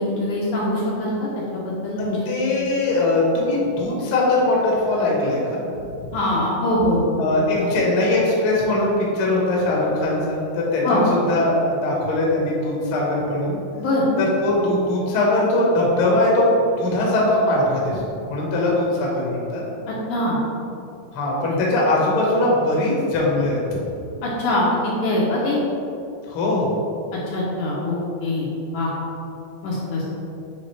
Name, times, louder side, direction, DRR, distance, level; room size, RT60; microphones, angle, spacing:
voice 1, 0.0-2.3 6.1-7.1 7.6-7.7 10.8-11.1 13.8-14.0 19.9-20.4 21.5-21.6 24.2-25.6 27.1-28.5 28.7-28.9 29.6-30.0, left 1 dB, 70° left, -6 dB, 2.1 m, -23 dB
voice 2, 2.2-6.1 7.2-11.0 11.3-13.6 14.2-16.5 16.8-18.0 18.3-19.6 21.1-23.6 26.3-26.7, left 2 dB, 55° left, -4 dB, 1.6 m, -21 dB
9.6 x 3.7 x 3.2 m, 2.6 s
omnidirectional pair, 4.0 m